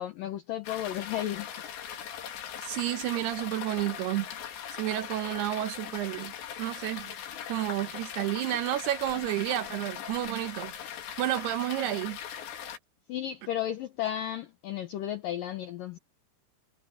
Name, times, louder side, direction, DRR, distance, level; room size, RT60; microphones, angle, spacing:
voice 1, 0.0-1.5 13.1-16.0, left 11 dB, 90° left, 1.9 m, -33 dB
sound 1, 0.6-12.8, left 9 dB, 65° left, 4.6 m, -40 dB
Wind instrument woodwind instrument, 1.9-6.2, left 5 dB, 45° left, 6.2 m, -61 dB
voice 2, 2.6-4.3 4.8-6.3 6.6-7.1 7.5-10.7 11.2-12.2, right 14 dB, 75° right, 2.6 m, -31 dB
omnidirectional pair, 5.5 m